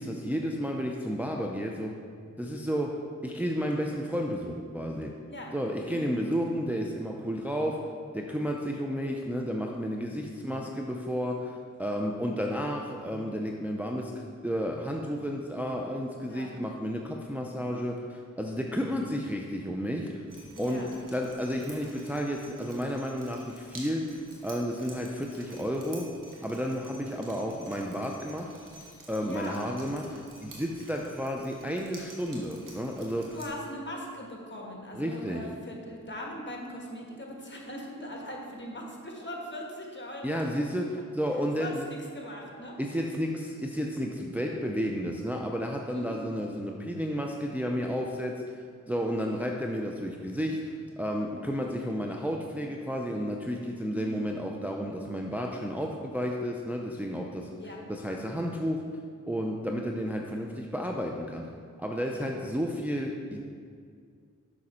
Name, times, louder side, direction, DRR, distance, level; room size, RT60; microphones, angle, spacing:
voice 1, 0.0-2.0 2.4-5.1 5.5-20.2 20.6-26.1 26.4-28.5 29.1-33.4 34.9-35.5 40.2-41.9 42.8-57.5 57.9-58.8 59.3-61.5 61.8-63.4, equal, 5° right, 1 dB, 0.6 m, -32 dB
voice 2, 16.2-16.5 20.5-21.0 29.2-29.7 33.2-40.4 41.6-42.8 45.9-46.2 53.9-54.2 57.6-57.8 62.1-62.3, left 1 dB, 35° left, -1 dB, 1.5 m, -40 dB
Drip, 20.3-33.5, right 1 dB, 75° right, 1.4 m, -50 dB
6.5 x 6.1 x 4.3 m, 2.2 s
cardioid pair, 45°, 32 cm